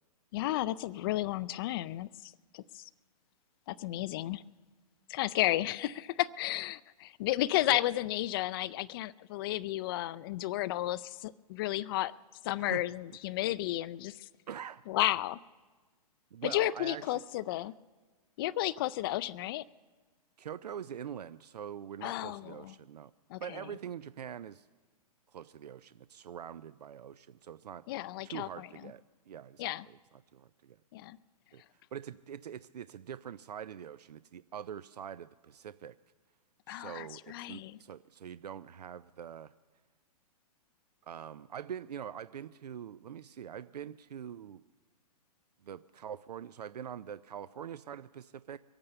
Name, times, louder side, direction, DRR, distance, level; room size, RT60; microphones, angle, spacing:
voice 1, 0.3-2.8 3.7-4.4 5.1-12.1 12.4-14.2 14.9-15.4 16.4-17.7 18.4-19.6 22.0-22.7 23.3-23.6 27.9-28.7 29.6-29.9 30.9-31.2 36.7-37.8, left 15 dB, 35° left, 0.4 m, -33 dB
voice 2, 14.5-14.8 16.3-17.2 20.4-23.1 23.4-24.7 25.3-27.8 28.2-30.0 30.3-30.8 31.5-31.6 31.9-35.9 36.7-39.5 41.0-44.6 45.6-48.6, right 9 dB, 85° right, 0.5 m, -44 dB
23.5 x 8.8 x 6.8 m
hypercardioid pair, 135°, 20 cm